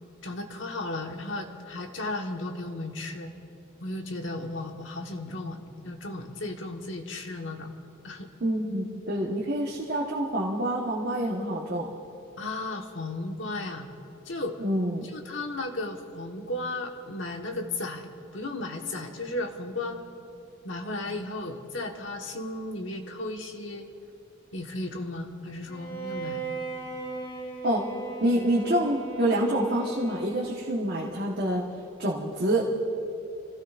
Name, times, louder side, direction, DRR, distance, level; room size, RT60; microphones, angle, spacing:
voice 1, 0.2-3.3 3.8-7.7 8.0-8.3 12.4-13.9 14.2-14.6 15.1-20.0 20.6-23.9 24.5-26.5, left 2 dB, 65° left, 3 dB, 1.3 m, -35 dB
voice 2, 8.4-11.9 14.6-15.1 27.6-27.8 28.2-31.6 32.0-32.7, right 1 dB, 50° right, -3 dB, 1.2 m, -27 dB
Bowed string instrument, 25.7-30.8, right 2 dB, 25° left, 3.5 m, -38 dB
28.5 x 16.0 x 2.5 m, 2.7 s
head